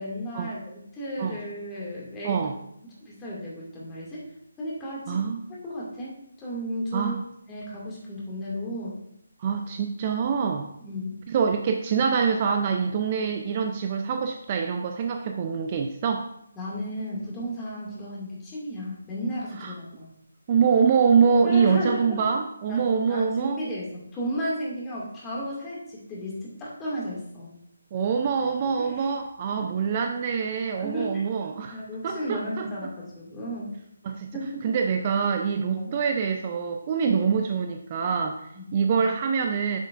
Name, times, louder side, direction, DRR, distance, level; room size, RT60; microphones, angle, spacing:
voice 1, 0.0-2.5 3.0-4.2 4.6-5.2 5.6-7.1 7.5-9.0 10.8-11.1 16.6-20.1 21.4-22.4 22.7-27.5 28.8-29.0 30.8-31.2 31.7-33.7 34.3-34.7 35.8-35.9 38.5-38.7, equal, 15° left, -6 dB, 2.2 m, -34 dB
voice 2, 2.2-2.6 5.1-5.4 6.9-7.2 9.4-10.7 11.3-16.2 19.6-19.7 20.5-23.6 27.9-31.8 32.0-32.7 34.1-34.3 34.6-38.4 38.7-39.8, right 6 dB, 30° right, 4 dB, 0.5 m, -25 dB
9.1 x 7.4 x 2.5 m, 0.75 s
figure-of-eight pair, 150°, 0 cm